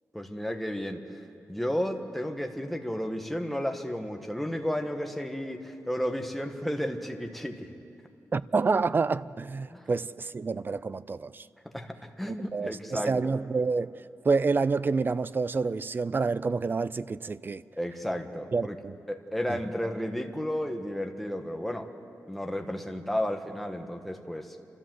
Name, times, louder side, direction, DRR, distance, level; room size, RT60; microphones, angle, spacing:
voice 1, 0.1-1.2 1.5-7.7 9.7-9.9 11.7-13.2 17.8-18.8 19.1-21.9 22.3-24.6, equal, ahead, 1.3 m, -32 dB
voice 2, 8.3-11.5 12.5-13.9 14.2-17.6 18.5-18.9, right 4 dB, 35° right, 0.4 m, -28 dB
28.5 x 13.0 x 7.7 m
wide cardioid pair, 120°, 6 cm